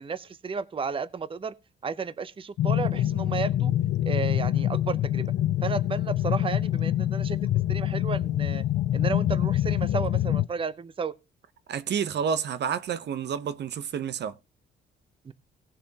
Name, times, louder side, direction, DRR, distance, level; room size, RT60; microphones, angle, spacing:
voice 1, 0.0-1.5 1.8-3.7 4.0-5.3 5.6-8.6 8.9-11.1 15.2-15.3, right 5 dB, 25° right, 0.6 m, -33 dB
sound 1, 2.6-10.5, left 12 dB, 65° left, 0.5 m, -25 dB
voice 2, 11.7-14.3, right 7 dB, 60° right, 0.7 m, -29 dB
18.5 x 6.7 x 2.8 m
cardioid pair, 90°, 20 cm